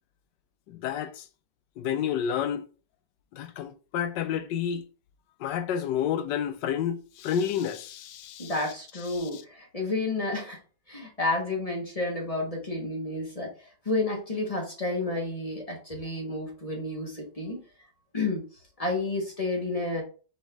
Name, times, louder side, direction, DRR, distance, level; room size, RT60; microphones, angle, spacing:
voice 1, 0.7-1.3 1.8-2.6 3.3-4.8 5.4-8.6 9.1-9.4, left 8 dB, 75° left, 1.2 m, -30 dB
voice 2, 8.4-10.6 10.9-13.5 13.8-17.6 18.1-18.4 18.8-20.0, left 2 dB, 25° left, 1.0 m, -30 dB
4.3 x 3.5 x 3.4 m
omnidirectional pair, 2.0 m